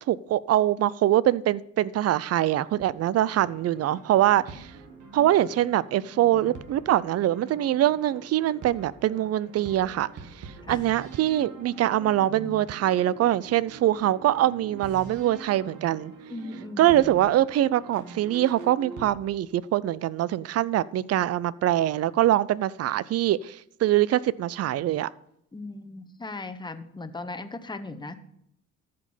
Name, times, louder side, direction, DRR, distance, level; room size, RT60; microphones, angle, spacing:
voice 1, 0.1-4.7 5.1-10.1 10.7-16.1 16.8-25.1, right 13 dB, 55° right, 0.5 m, -23 dB
sound 1, 3.3-19.1, right 3 dB, 75° right, 1.5 m, -44 dB
voice 2, 6.1-6.5 10.7-10.8 16.3-17.0 25.5-28.2, left 2 dB, 15° left, 1.0 m, -38 dB
14.0 x 5.2 x 5.5 m
cardioid pair, 90°, 30 cm